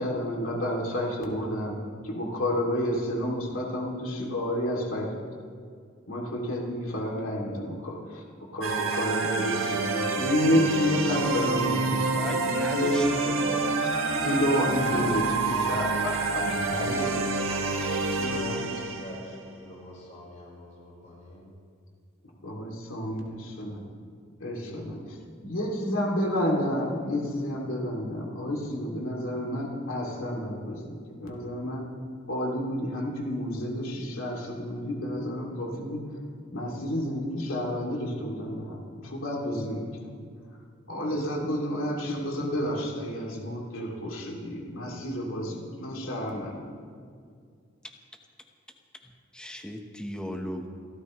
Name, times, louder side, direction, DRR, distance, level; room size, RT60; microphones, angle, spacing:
voice 1, 0.0-5.1 6.1-13.4 14.2-16.4 18.1-18.7 22.4-23.9 24.4-25.2 25.4-31.8 32.3-36.1 36.5-39.9 40.9-46.6, equal, 80° left, -2 dB, 2.8 m, -30 dB
sound 1, 8.6-19.4, right 3 dB, 75° right, 1.5 m, -28 dB
voice 2, 12.2-13.9 24.7-25.3 49.0-50.7, equal, 5° left, 3 dB, 1.1 m, -38 dB
voice 3, 16.7-17.3 18.2-21.5, equal, 35° left, -4 dB, 4.4 m, -40 dB
29.5 x 13.5 x 3.2 m, 2.2 s
head